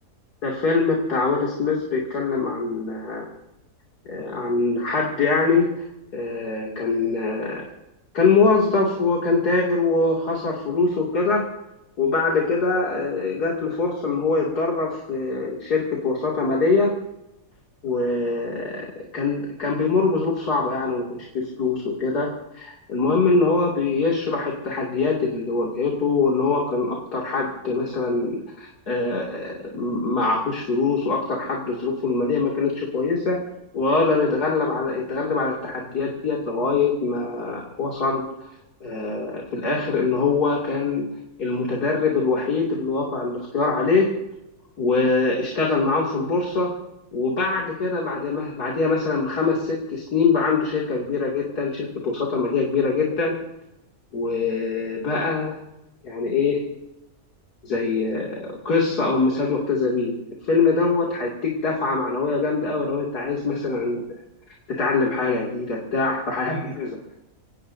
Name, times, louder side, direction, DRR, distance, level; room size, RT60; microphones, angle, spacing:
voice 1, 0.4-3.3 4.1-5.8 6.1-7.7 8.1-11.5 12.0-16.9 17.8-18.9 19.1-33.4 33.7-38.2 38.8-41.1 41.4-44.1 44.8-46.7 47.1-53.4 54.1-55.6 56.0-56.6 57.6-60.2 60.4-64.0 64.8-66.9, left 4 dB, 85° left, -2 dB, 3.3 m, -23 dB
26.5 x 18.5 x 2.8 m, 0.90 s
omnidirectional pair, 1.6 m